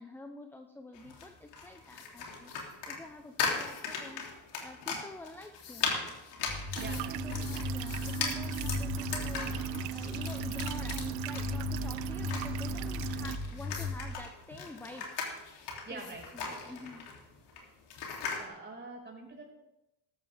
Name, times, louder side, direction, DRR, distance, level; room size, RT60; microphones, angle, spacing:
voice 1, 0.0-5.9 6.8-15.1 15.9-16.0 16.3-17.1, left 2 dB, 5° left, 6 dB, 0.7 m, -48 dB
sound 1, 0.9-18.5, left 5 dB, 65° left, 3.1 m, -39 dB
sound 2, 6.5-14.1, left 4 dB, 25° left, 1.6 m, -37 dB
voice 2, 6.8-7.2 15.9-16.7 18.4-19.5, right 3 dB, 25° right, -1 dB, 5.2 m, -45 dB
sound 3, 6.8-13.4, right 15 dB, 80° right, 0.7 m, -38 dB
14.0 x 12.5 x 3.5 m, 0.93 s
cardioid pair, 105°, 44 cm